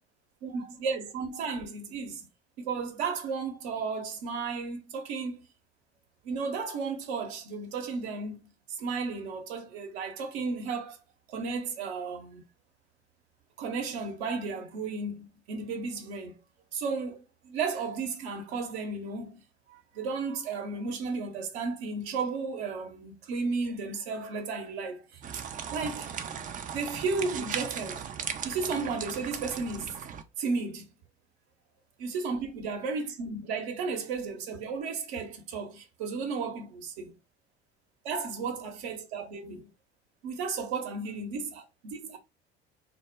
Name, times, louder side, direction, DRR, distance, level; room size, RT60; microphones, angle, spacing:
voice 1, 0.4-2.3 2.6-5.4 6.2-11.0 11.3-12.4 13.6-16.4 16.7-19.4 19.7-25.4 25.7-26.1 26.7-28.0 28.4-30.1 30.4-30.9 32.0-37.2 38.0-39.7 40.2-42.2, right 4 dB, 70° right, 0.8 m, -34 dB
sound 1, 25.2-30.2, right 7 dB, 25° right, 0.3 m, -37 dB
2.1 x 2.1 x 3.4 m
hypercardioid pair, 60°, 34 cm